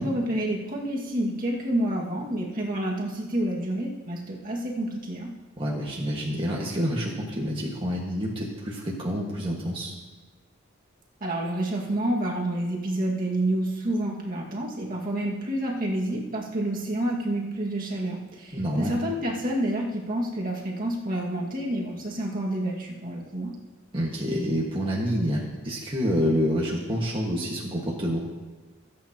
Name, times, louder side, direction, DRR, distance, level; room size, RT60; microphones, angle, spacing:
voice 1, 0.0-5.3 11.2-23.5, right 1 dB, 45° right, -2 dB, 2.0 m, -29 dB
voice 2, 5.6-9.9 18.5-19.0 23.9-28.2, equal, 25° right, -3 dB, 1.7 m, -28 dB
25.5 x 8.7 x 3.0 m, 1.3 s
head